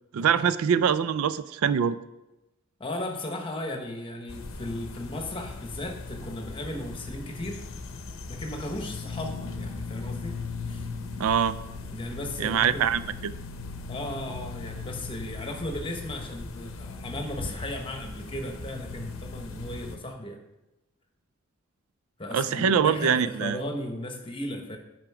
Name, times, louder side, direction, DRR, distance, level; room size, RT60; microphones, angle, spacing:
voice 1, 0.1-2.0 11.2-11.6 12.4-13.3 22.3-23.6, right 7 dB, 75° right, 15 dB, 0.4 m, -24 dB
voice 2, 2.8-7.6 8.3-10.4 10.7-10.9 11.9-13.0 13.9-20.4 22.2-24.8, left 1 dB, 25° left, 3 dB, 1.0 m, -36 dB
sound 1, 4.3-20.0, left 3 dB, 70° left, 0.7 m, -38 dB
8.9 x 5.0 x 4.8 m, 0.97 s
head